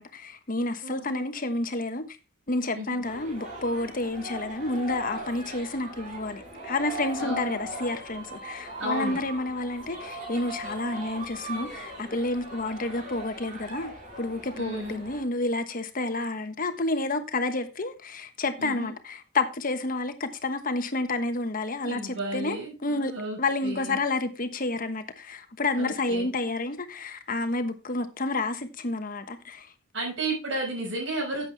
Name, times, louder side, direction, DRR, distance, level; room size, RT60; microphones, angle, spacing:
voice 1, 0.0-2.1 2.5-29.7, left 2 dB, 45° left, 1.2 m, -30 dB
voice 2, 0.8-1.2 2.7-2.9 7.2-7.6 8.8-9.2 14.6-15.0 18.6-18.9 21.8-24.0 25.8-26.3 29.9-31.5, right 2 dB, 65° right, 6.1 m, -33 dB
sound 1, 3.0-15.2, right 1 dB, 40° right, 4.6 m, -39 dB
11.0 x 8.1 x 3.5 m
head